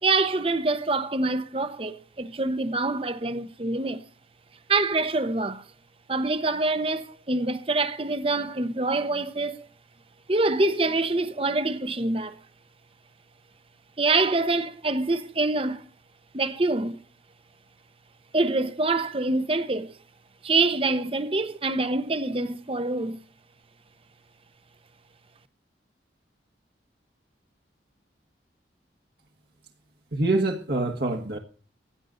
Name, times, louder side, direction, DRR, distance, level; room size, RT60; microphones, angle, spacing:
voice 1, 0.0-4.0 4.7-5.6 6.1-9.7 10.3-12.4 14.0-15.9 16.3-17.0 18.3-19.9 20.4-23.2, right 3 dB, 30° right, 0.9 m, -25 dB
voice 2, 30.1-31.4, right 2 dB, 60° right, 1.5 m, -25 dB
16.0 x 10.0 x 3.9 m
head